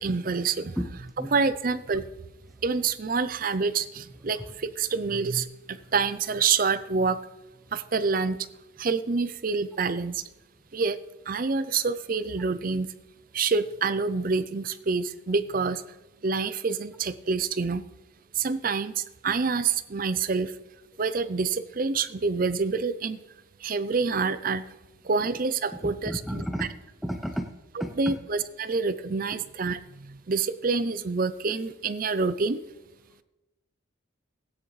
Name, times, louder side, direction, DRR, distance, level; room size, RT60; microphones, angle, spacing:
voice 1, 0.0-2.0 2.6-7.2 7.7-8.4 8.8-10.2 10.7-11.0 11.3-12.9 13.3-15.8 16.2-17.8 18.3-20.5 21.0-23.2 23.6-24.6 25.0-26.7 28.0-32.6, right 4 dB, 45° right, 14 dB, 0.5 m, -27 dB
voice 2, 25.8-26.7 27.0-27.5 27.8-28.1, equal, ahead, 6 dB, 0.7 m, -31 dB
16.5 x 9.4 x 3.3 m, 1.0 s
head